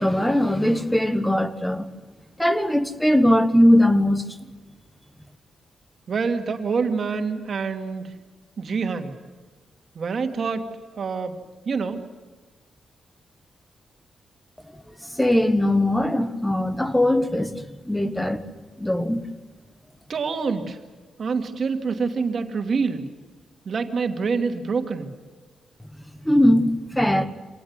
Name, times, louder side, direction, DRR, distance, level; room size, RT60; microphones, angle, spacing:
voice 1, 0.0-1.9 2.4-4.2 15.2-17.5 17.9-18.4 18.8-19.2 26.3-27.3, left 1 dB, 5° left, 1.3 m, -20 dB
voice 2, 6.1-8.1 8.6-9.1 9.9-10.7 11.0-11.4 11.7-12.0 20.1-20.8 21.2-23.1 23.7-25.1, right 5 dB, 45° right, 2.3 m, -26 dB
26.0 x 19.0 x 9.7 m
wide cardioid pair, 160°, 0 cm